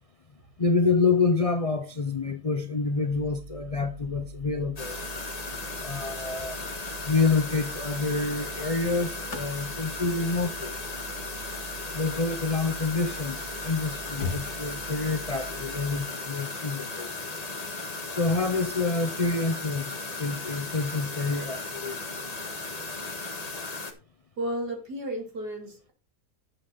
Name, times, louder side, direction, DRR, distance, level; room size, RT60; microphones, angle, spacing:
voice 1, 0.6-5.0 5.8-6.8 7.0-10.8 11.9-17.1 18.1-22.0, left 4 dB, 45° left, 0.4 m, -27 dB
sound 1, 3.1-16.0, right 9 dB, 10° right, 1.3 m, -46 dB
sound 2, 4.8-23.9, left 3 dB, 25° left, 1.5 m, -36 dB
sound 3, 8.8-13.0 13.6-13.7 13.8-15.1 16.8-17.0, left 4 dB, 65° left, 2.4 m, -41 dB
voice 2, 24.4-25.9, right 1 dB, 75° right, 3.6 m, -33 dB
11.0 x 7.4 x 4.1 m
omnidirectional pair, 1.7 m